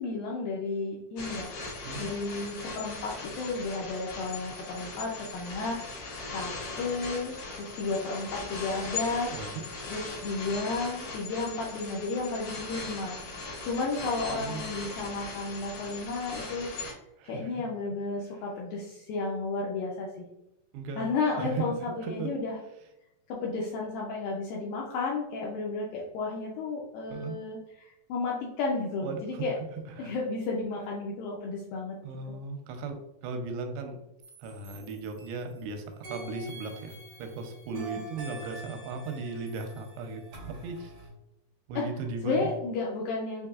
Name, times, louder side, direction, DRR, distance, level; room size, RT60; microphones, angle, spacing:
voice 1, 0.0-5.8 6.3-6.5 6.8-9.3 9.9-16.7 17.2-20.1 21.0-22.6 23.3-29.6 30.0-32.0 37.7-38.0 41.8-41.9 42.2-43.5, left 3 dB, 80° left, -3 dB, 2.1 m, -33 dB
sound 1, 1.2-16.9, left 3 dB, 60° left, 2.9 m, -39 dB
voice 2, 9.3-9.6 14.3-14.6 17.2-17.5 20.7-21.1 21.4-21.6 22.0-22.3 27.1-27.4 29.0-29.4 30.0-30.1 32.0-34.0 34.4-40.2 40.5-40.9 41.7-42.5, right 4 dB, 90° right, 5 dB, 2.8 m, -37 dB
sound 2, 34.2-35.6 36.0-41.1, right 1 dB, 70° right, 1.1 m, -46 dB
6.9 x 2.8 x 2.4 m, 0.88 s
omnidirectional pair, 4.8 m